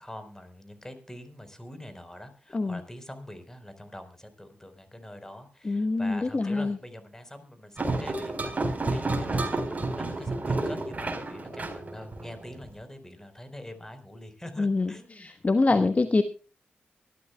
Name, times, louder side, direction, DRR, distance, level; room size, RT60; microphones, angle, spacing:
voice 1, 0.0-15.3 15.7-15.9, left 1 dB, 15° left, 9 dB, 4.2 m, -44 dB
voice 2, 5.6-6.8 14.6-16.2, left 3 dB, 40° left, 9 dB, 1.1 m, -25 dB
sound 1, 7.8-12.6, right 2 dB, 40° right, 4.3 m, -30 dB
24.0 x 12.5 x 2.3 m, 0.36 s
cardioid pair, 55°, 4 cm